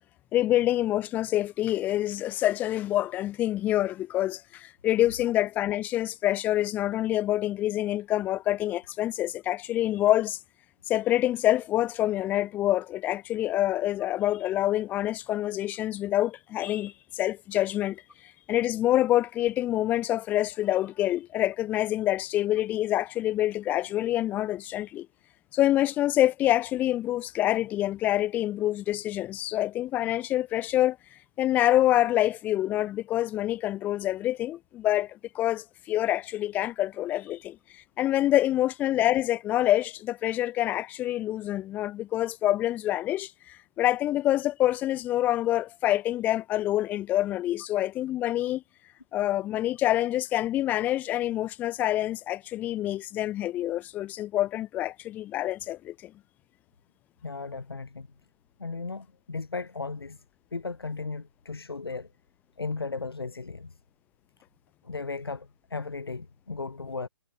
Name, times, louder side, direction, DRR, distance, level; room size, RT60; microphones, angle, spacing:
voice 1, 0.3-10.4 10.9-18.0 18.5-25.1 25.5-31.0 31.4-48.6 49.1-56.1, left 14 dB, 10° left, 0.8 m, -26 dB
voice 2, 57.2-58.1 58.6-60.2 60.5-62.1 62.6-63.7 64.8-67.1, left 4 dB, 65° left, 2.3 m, -36 dB
figure-of-eight pair, 135°, 13 cm